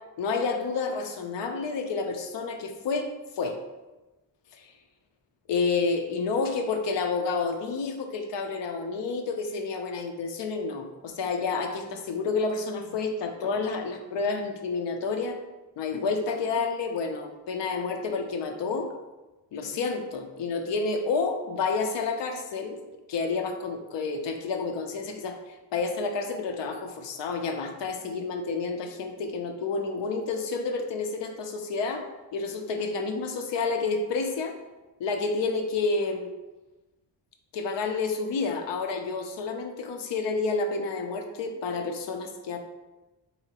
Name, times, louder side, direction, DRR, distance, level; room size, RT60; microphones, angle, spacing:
voice 1, 0.2-3.1 3.3-3.6 4.5-4.7 5.5-15.4 15.8-18.9 19.5-22.8 23.1-32.1 32.3-34.5 35.0-36.3 37.5-42.6, left 4 dB, 85° left, 5 dB, 0.6 m, -29 dB
3.9 x 2.7 x 2.8 m, 1.1 s
wide cardioid pair, 180°, 42 cm